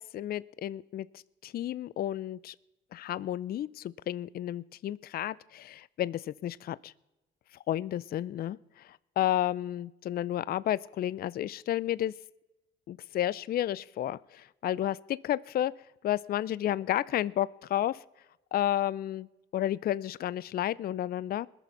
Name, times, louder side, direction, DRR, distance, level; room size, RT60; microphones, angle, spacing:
voice 1, 0.0-2.5 2.9-6.9 7.7-12.1 12.9-15.7 16.0-18.0 18.5-19.3 19.5-21.5, left 12 dB, 50° left, 20 dB, 0.4 m, -32 dB
20.5 x 6.9 x 5.9 m, 0.98 s
cardioid pair, 90°, 20 cm